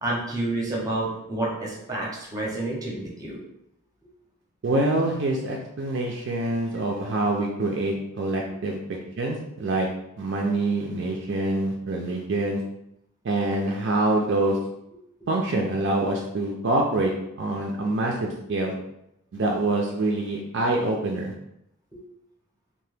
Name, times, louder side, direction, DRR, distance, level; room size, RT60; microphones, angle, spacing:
voice 1, 0.0-3.4 21.9-22.0, right 2 dB, 15° right, -3 dB, 0.6 m, -29 dB
voice 2, 4.6-9.9 10.2-12.6 13.2-14.6 15.3-17.1 17.4-18.7 19.3-21.3, right 2 dB, 55° right, 0 dB, 0.4 m, -25 dB
2.7 x 2.1 x 3.3 m, 0.82 s
head